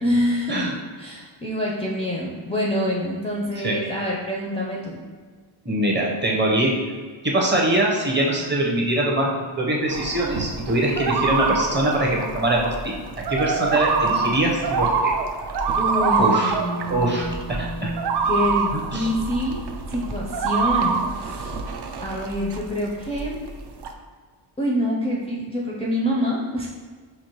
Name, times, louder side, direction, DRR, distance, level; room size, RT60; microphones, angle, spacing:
voice 1, 0.0-0.7 1.0-5.0 15.8-19.6 19.9-21.5 22.0-23.4 24.6-26.7, equal, 15° left, -5 dB, 0.4 m, -26 dB
voice 2, 5.6-6.8 7.2-15.2 16.2-16.6 16.9-17.3 17.6-17.9 18.7-19.1, right 1 dB, 20° right, -2 dB, 0.7 m, -23 dB
sound 1, 9.9-22.7 23.0-23.9, right 5 dB, 55° right, 0.5 m, -26 dB
4.4 x 2.6 x 2.9 m, 1.5 s
cardioid pair, 85°, 48 cm